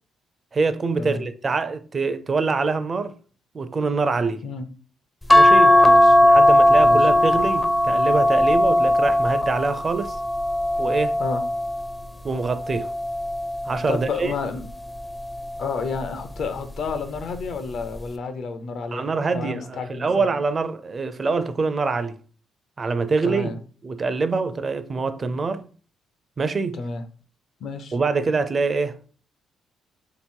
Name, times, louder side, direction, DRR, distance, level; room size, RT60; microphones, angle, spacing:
voice 1, 0.5-3.1 3.5-4.4 5.3-5.8 6.2-10.2 10.8-11.2 12.2-12.9 13.7-14.3 18.9-22.2 22.8-23.5 23.8-25.7 26.4-26.8 27.9-29.0, right 4 dB, 35° right, 0.4 m, -24 dB
sound 1, 5.3-11.9 12.6-14.0 15.2-15.6 16.0-16.1, left 1 dB, 15° left, 0.5 m, -18 dB
voice 2, 5.8-6.2 6.8-7.0 11.2-11.4 13.9-14.6 15.6-19.0 19.3-20.3 23.2-23.6 26.7-27.0 27.6-28.0, left 4 dB, 65° left, 0.7 m, -30 dB
3.2 x 3.0 x 4.4 m
cardioid pair, 90°, 0 cm